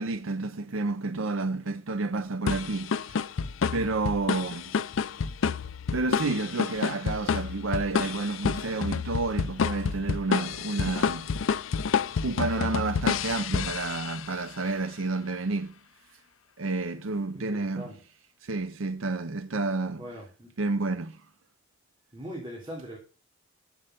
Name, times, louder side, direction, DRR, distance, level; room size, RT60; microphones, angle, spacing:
voice 1, 0.0-3.2 3.7-4.8 5.9-11.3 12.2-15.8 16.6-17.9 18.4-20.1 20.6-21.2, right 3 dB, 80° right, 0.7 m, -30 dB
sound 1, 2.5-14.4, left 6 dB, 80° left, 0.5 m, -29 dB
voice 2, 17.3-18.0 20.0-20.5 22.1-23.0, equal, 25° right, 3.2 m, -41 dB
8.1 x 7.7 x 6.5 m
head